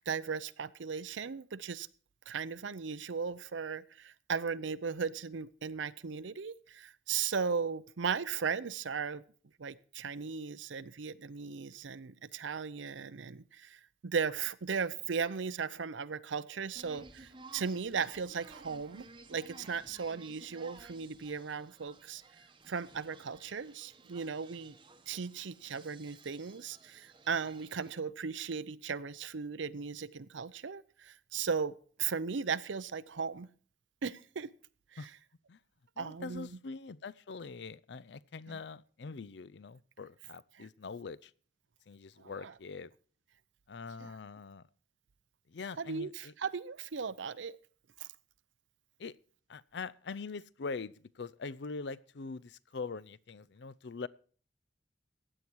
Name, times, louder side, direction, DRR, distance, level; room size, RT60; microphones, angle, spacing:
voice 1, 0.1-1.9 2.3-9.2 9.6-22.2 22.7-24.8 25.1-33.5 34.0-34.5 34.9-35.1 36.0-36.5 38.5-38.6 40.5-40.7 42.2-42.5 44.0-44.1 45.8-47.6 48.0-48.1, right 6 dB, 85° right, 0.6 m, -37 dB
sound 1, 16.8-27.9, right 3 dB, 25° right, 0.9 m, -56 dB
voice 2, 36.0-41.3 41.9-42.9 43.7-44.7 45.5-46.3 49.0-49.2 49.5-54.1, left 4 dB, 65° left, 0.5 m, -43 dB
15.5 x 9.8 x 4.6 m
head